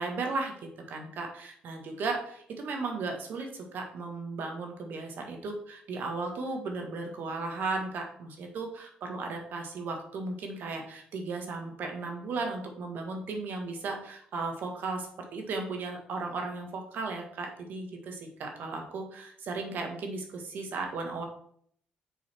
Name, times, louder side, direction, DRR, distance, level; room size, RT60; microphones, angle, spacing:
voice 1, 0.0-21.2, right 3 dB, 65° right, 3 dB, 1.6 m, -35 dB
7.2 x 4.1 x 4.5 m, 0.64 s
cardioid pair, 80°, 3 cm